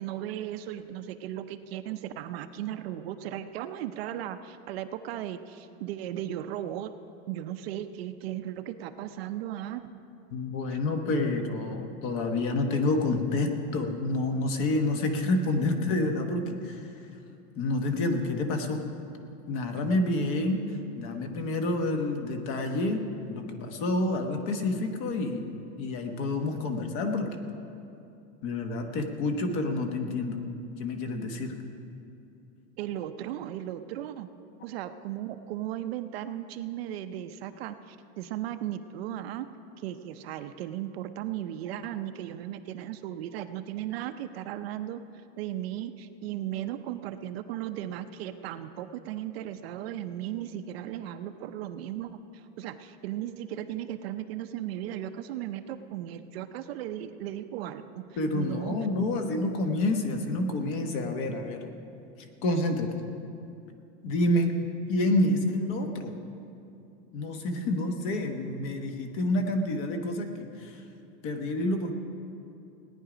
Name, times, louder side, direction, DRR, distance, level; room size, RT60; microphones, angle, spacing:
voice 1, 0.0-6.9 7.3-9.8 32.8-34.3 34.6-39.5 39.8-45.0 45.4-58.0 58.3-59.1, right 12 dB, 60° right, 9 dB, 0.6 m, -36 dB
voice 2, 10.3-16.9 17.6-18.9 19.5-25.5 25.8-27.3 28.4-30.4 30.8-31.6 58.2-61.7 62.4-62.9 64.0-64.5 64.9-66.1 67.1-70.8 71.2-71.9, left 2 dB, 40° left, 5 dB, 1.1 m, -28 dB
18.0 x 9.9 x 5.0 m, 2.7 s
supercardioid pair, 175°, 35 cm